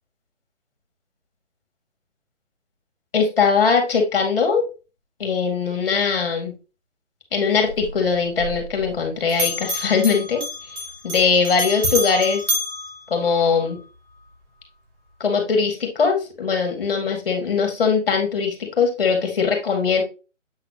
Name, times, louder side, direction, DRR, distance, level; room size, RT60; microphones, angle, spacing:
voice 1, 3.1-4.6 5.2-6.5 7.3-10.4 11.0-12.4 13.1-13.8 15.2-20.0, left 5 dB, 45° left, 4 dB, 2.2 m, -20 dB
Bell, 7.7-9.0 9.3-13.8, equal, 65° right, 4.1 m, -29 dB
7.9 x 4.1 x 3.2 m, 0.31 s
hypercardioid pair, 165°, 38 cm